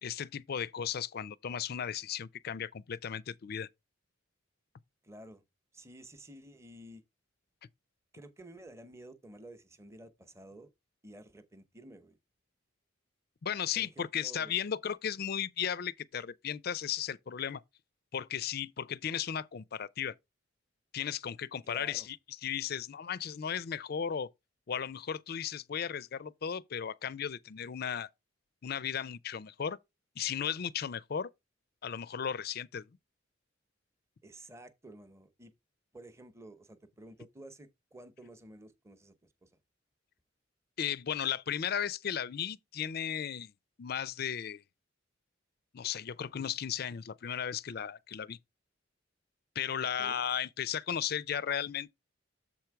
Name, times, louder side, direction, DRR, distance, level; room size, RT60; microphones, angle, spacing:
voice 1, 0.0-3.7 13.4-17.6 18.1-20.1 20.9-22.2 22.4-24.3 24.7-28.1 28.6-29.8 30.2-31.3 31.8-32.9 40.8-43.5 43.8-44.6 45.7-48.4 49.6-51.9, left 8 dB, 50° left, 0.4 m, -35 dB
voice 2, 5.0-5.4 5.7-7.0 8.1-10.7 11.0-12.2 13.7-14.5 21.6-22.1 34.2-35.5 35.9-39.2 39.4-39.5 50.0-50.2, right 1 dB, 15° right, 0.8 m, -52 dB
7.3 x 4.5 x 4.7 m
head